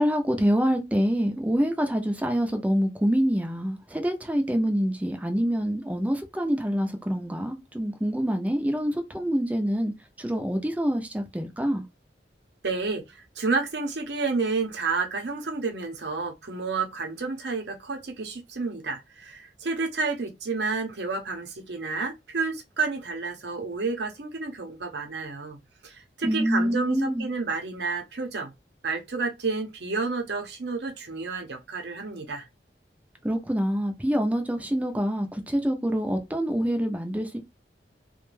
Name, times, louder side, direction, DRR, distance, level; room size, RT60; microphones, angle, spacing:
voice 1, 0.0-9.9 10.2-11.8 26.2-27.3 33.2-37.4, equal, 10° right, 0.5 m, -26 dB
voice 2, 12.6-25.6 25.8-28.5 28.8-32.5, right 4 dB, 70° right, 0.7 m, -30 dB
2.5 x 2.2 x 3.1 m
head